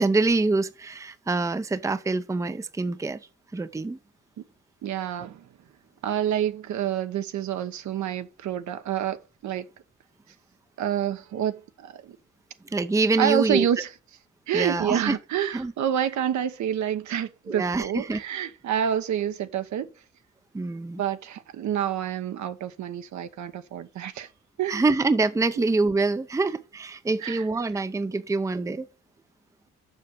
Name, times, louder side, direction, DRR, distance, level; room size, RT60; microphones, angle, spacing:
voice 1, 0.0-3.2 3.5-4.0 12.7-13.7 14.5-15.2 15.5-15.7 17.5-18.2 20.5-21.0 24.7-28.9, right 3 dB, 10° right, 0.6 m, -25 dB
voice 2, 4.8-5.5 6.0-9.7 10.8-12.2 13.2-13.9 14.5-19.9 21.0-24.3 24.6-24.9 25.6-25.7 27.2-27.4, right 10 dB, 70° right, 1.1 m, -28 dB
6.9 x 5.8 x 6.4 m
cardioid pair, 90°, 30 cm